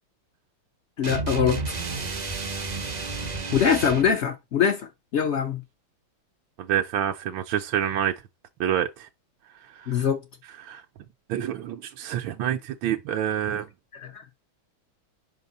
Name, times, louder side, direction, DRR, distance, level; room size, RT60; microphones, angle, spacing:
voice 1, 1.0-1.6 3.5-5.6 9.9-10.2 14.0-14.2, left 7 dB, 75° left, 0.6 m, -23 dB
sound 1, 1.0-4.1, right 3 dB, 55° right, 0.4 m, -31 dB
voice 2, 6.6-8.1 8.6-9.1 9.7-10.0 10.6-10.8 11.3-13.7, right 10 dB, 80° right, 1.3 m, -27 dB
5.3 x 5.3 x 3.9 m
omnidirectional pair, 2.2 m